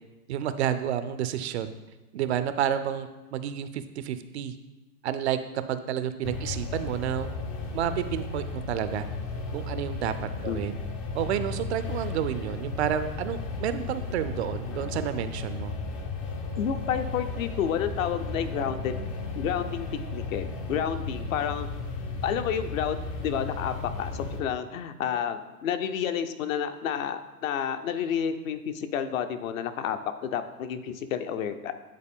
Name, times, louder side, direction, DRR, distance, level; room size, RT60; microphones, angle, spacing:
voice 1, 0.3-1.7 2.1-4.5 5.0-5.4 5.7-7.3 7.7-9.0 9.5-10.8 11.1-15.7, right 10 dB, 45° right, 11 dB, 0.5 m, -30 dB
sound 1, 6.2-24.4, left 3 dB, 25° left, 0.4 m, -34 dB
voice 2, 16.6-18.9 19.4-21.7 22.2-31.7, left 8 dB, 55° left, 9 dB, 0.7 m, -30 dB
9.7 x 3.9 x 3.6 m, 1.1 s
hypercardioid pair, 120°, 47 cm